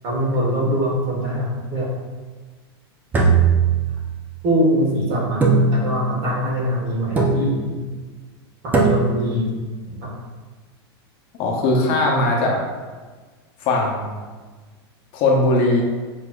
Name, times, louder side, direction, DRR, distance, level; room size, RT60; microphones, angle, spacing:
voice 1, 0.0-1.9 4.4-7.7 8.6-9.5 9.9-10.1, equal, 40° right, -3 dB, 1.4 m, -23 dB
sound 1, 3.1-4.3 5.4-6.2 7.2-7.8 8.7-9.4, right 4 dB, 15° right, 0.6 m, -19 dB
voice 2, 11.4-12.6 13.6-14.1 15.1-15.8, left 2 dB, 45° left, -1 dB, 0.9 m, -19 dB
6.7 x 2.8 x 2.4 m, 1.4 s
supercardioid pair, 140°, 13 cm